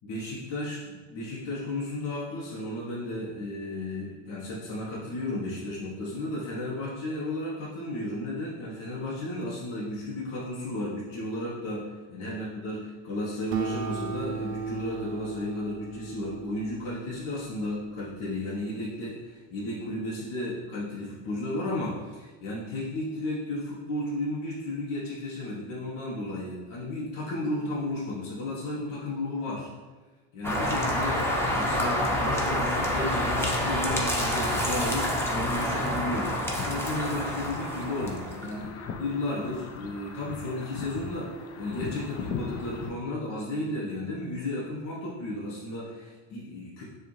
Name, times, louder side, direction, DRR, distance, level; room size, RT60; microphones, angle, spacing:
voice 1, 0.0-29.7 30.3-36.4 36.6-41.3 41.6-46.8, left 1 dB, 65° left, -6 dB, 1.2 m, -34 dB
Acoustic guitar, 13.5-18.4, right 5 dB, 55° right, 0.6 m, -36 dB
sound 1, 30.4-38.6, equal, 5° left, 0.8 m, -28 dB
sound 2, 36.5-42.9, left 5 dB, 45° left, 0.5 m, -39 dB
6.6 x 2.5 x 3.2 m, 1.3 s
cardioid pair, 115°, 35 cm